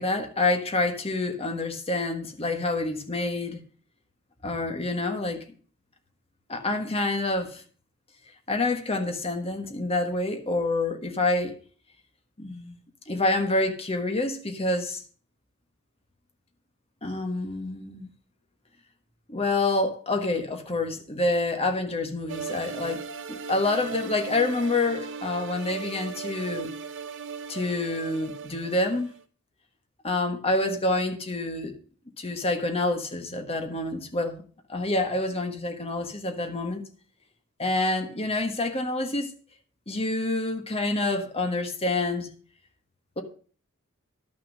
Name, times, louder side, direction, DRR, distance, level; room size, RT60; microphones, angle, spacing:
voice 1, 0.0-3.6 4.4-5.4 6.5-7.6 8.5-11.6 12.4-12.8 13.1-15.0 17.0-18.1 19.3-23.0 23.3-26.7 27.5-29.1 30.0-31.8 32.2-34.4 34.7-36.8 37.6-39.3 39.9-42.3 43.2-43.3, left 2 dB, 25° left, 1.4 m, -27 dB
sound 1, 22.3-29.2, right 5 dB, 55° right, 0.7 m, -38 dB
11.5 x 6.2 x 6.3 m
head